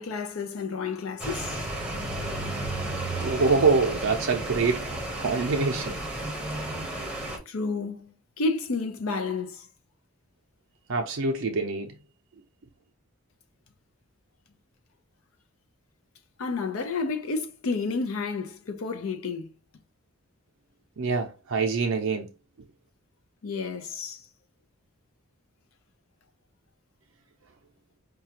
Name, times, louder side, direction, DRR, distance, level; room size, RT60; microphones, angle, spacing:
voice 1, 0.0-1.6 7.5-9.7 16.4-19.5 23.4-24.2, left 4 dB, 75° left, 0.5 m, -31 dB
sound 1, 1.2-7.4, right 1 dB, 5° right, 0.8 m, -33 dB
voice 2, 3.2-6.0 10.9-11.9 21.0-22.3, right 4 dB, 65° right, 0.5 m, -25 dB
4.8 x 2.3 x 2.8 m
head